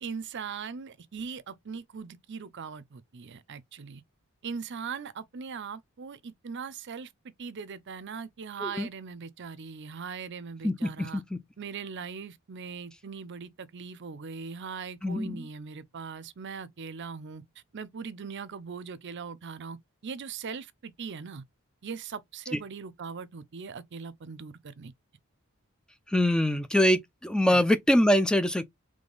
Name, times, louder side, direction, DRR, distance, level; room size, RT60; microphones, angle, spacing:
voice 1, 0.0-4.0 4.4-7.1 7.4-11.2 11.6-17.4 17.7-19.8 20.0-21.4 21.8-24.9 27.5-27.6, right 5 dB, 55° right, 0.5 m, -40 dB
voice 2, 10.6-11.4 15.0-15.4 26.1-28.6, equal, 5° left, 0.3 m, -24 dB
3.6 x 3.2 x 3.9 m
head